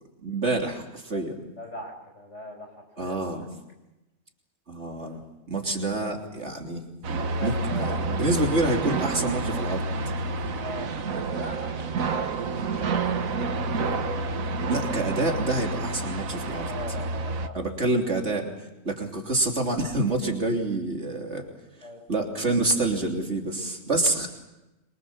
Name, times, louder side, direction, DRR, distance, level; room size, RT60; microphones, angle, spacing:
voice 1, 0.2-1.4 3.0-3.5 4.7-5.2 5.5-6.8 7.4-9.9 14.7-16.7 17.5-18.5 18.8-21.5 22.1-24.3, right 2 dB, 50° right, 2 dB, 3.5 m, -27 dB
voice 2, 1.6-2.7 3.0-3.2 5.6-5.7 7.2-8.0 10.6-10.9 11.3-14.1 16.6-17.6 18.8-19.0 21.8-22.0, left 1 dB, 55° left, 4 dB, 6.1 m, -40 dB
sound 1, 7.0-17.5, right 3 dB, 75° right, 1.6 m, -29 dB
26.0 x 24.0 x 7.3 m, 0.98 s
omnidirectional pair, 1.5 m